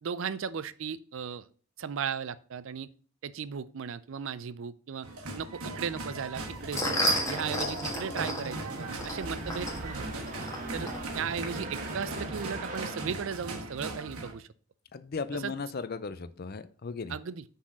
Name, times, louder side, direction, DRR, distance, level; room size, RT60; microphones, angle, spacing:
voice 1, 0.0-1.5 1.8-2.9 3.2-5.1 5.4-10.2 10.7-14.5 15.3-15.5 17.1-17.4, right 6 dB, 60° right, 16 dB, 0.4 m, -36 dB
sound 1, 5.0-14.3, right 2 dB, 85° right, 1.3 m, -39 dB
sound 2, 6.4-11.6, equal, 15° left, 1.3 m, -33 dB
sound 3, 7.4-14.1, right 2 dB, 35° right, 1.1 m, -43 dB
voice 2, 14.9-17.1, left 4 dB, 45° left, 14 dB, 0.5 m, -36 dB
6.0 x 4.2 x 6.1 m, 0.43 s
head